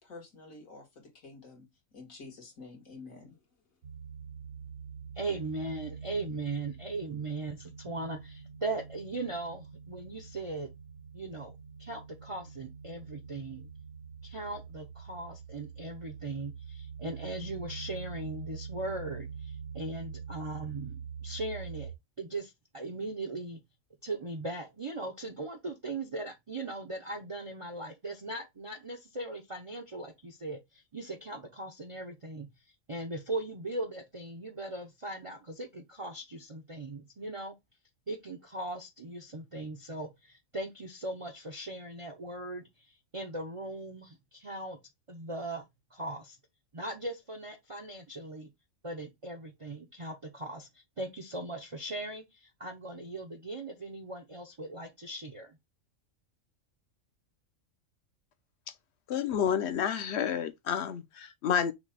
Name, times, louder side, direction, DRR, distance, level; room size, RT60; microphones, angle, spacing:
voice 1, 0.0-3.4, left 3 dB, 75° left, 2.1 m, -49 dB
sound 1, 3.8-21.9, right 6 dB, 75° right, 1.2 m, -45 dB
voice 2, 5.2-10.7 11.1-11.5 11.8-13.7 14.2-23.6 24.0-32.5 32.9-37.5 38.1-44.8 45.1-45.6 45.9-46.4 46.7-48.5 48.8-55.6, right 2 dB, 35° right, 0.5 m, -39 dB
voice 3, 59.1-61.7, left 8 dB, 60° left, 0.9 m, -30 dB
6.0 x 2.2 x 4.0 m
omnidirectional pair, 1.4 m